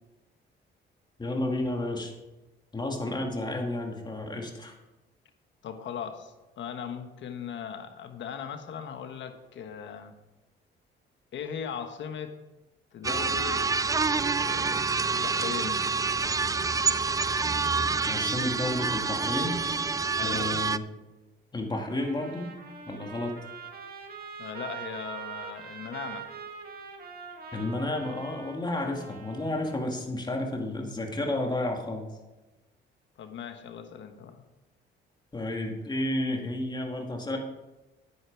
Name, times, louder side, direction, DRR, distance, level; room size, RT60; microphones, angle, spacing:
voice 1, 1.2-2.1 2.7-4.7 18.1-19.6 20.2-20.8 21.5-22.5 22.9-23.4 27.5-32.1 35.3-37.4, left 1 dB, 20° left, 2 dB, 2.2 m, -31 dB
voice 2, 5.6-10.1 11.3-12.3 12.9-13.7 14.3-14.8 15.1-15.8 20.2-20.6 24.4-26.3 33.2-34.4, left 7 dB, 70° left, 7 dB, 1.3 m, -38 dB
sound 1, 13.0-20.8, right 4 dB, 15° right, 0.4 m, -27 dB
Trumpet, 21.7-29.9, right 6 dB, 50° right, 1.8 m, -43 dB
9.8 x 9.0 x 4.7 m, 1.1 s
cardioid pair, 90°, 20 cm